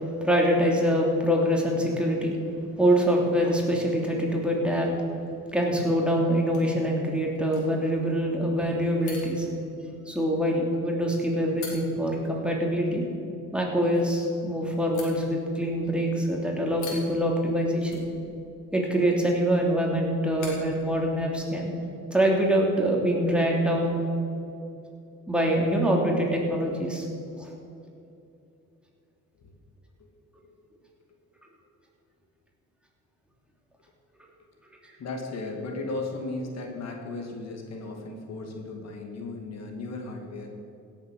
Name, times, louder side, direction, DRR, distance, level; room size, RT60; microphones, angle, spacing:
voice 1, 0.2-2.4 2.8-4.9 5.5-9.5 10.1-13.0 13.5-18.0 18.7-21.7 22.1-24.0 25.3-27.1 27.4-27.5, equal, 5° right, -2 dB, 2.8 m, -24 dB
sound 1, 5.0-21.5, left 4 dB, 75° left, 3.5 m, -50 dB
voice 2, 35.0-40.5, left 2 dB, 60° left, 2 dB, 2.1 m, -35 dB
16.5 x 7.3 x 6.4 m, 2.7 s
cardioid pair, 90°, 30 cm